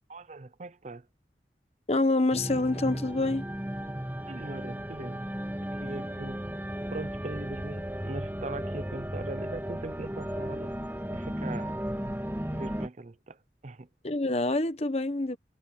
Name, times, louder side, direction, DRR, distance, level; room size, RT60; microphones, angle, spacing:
voice 1, 0.1-1.1 4.3-6.4 6.9-10.8 11.1-11.8 12.5-13.4 13.6-13.9, right 2 dB, 40° right, 0.6 m, -41 dB
voice 2, 1.9-3.5 14.0-15.4, left 2 dB, 35° left, 1.1 m, -26 dB
sound 1, 2.3-12.9, equal, 10° right, 1.9 m, -35 dB
head